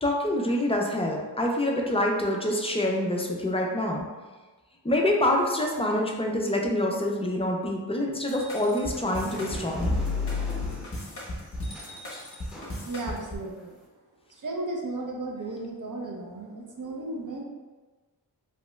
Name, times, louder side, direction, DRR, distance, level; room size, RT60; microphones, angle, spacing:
voice 1, 0.0-4.1 4.8-9.9, left 1 dB, 15° left, 0 dB, 0.4 m, -26 dB
sound 1, 8.3-13.4, left 3 dB, 30° left, 0.8 m, -32 dB
sound 2, 8.6-13.8, equal, ahead, 1.0 m, -44 dB
voice 2, 12.8-13.8 14.3-17.4, right 2 dB, 45° right, 0 dB, 0.6 m, -35 dB
3.0 x 2.2 x 3.0 m, 1.2 s
wide cardioid pair, 90°, 42 cm